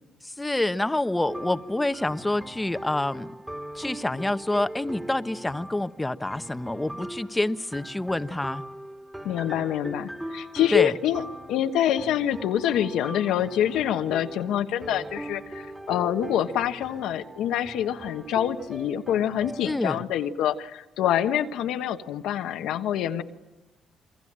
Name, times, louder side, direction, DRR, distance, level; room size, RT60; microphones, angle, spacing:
voice 1, 0.2-3.3 3.7-8.6 10.7-10.9 19.6-20.0, left 1 dB, 10° left, 11 dB, 1.2 m, -27 dB
sound 1, 1.3-19.8, right 1 dB, 10° right, 2.6 m, -40 dB
voice 2, 9.2-11.2 11.5-23.2, left 10 dB, 85° left, 7 dB, 1.3 m, -26 dB
28.0 x 23.5 x 8.9 m, 1.0 s
cardioid pair, 90°, 0 cm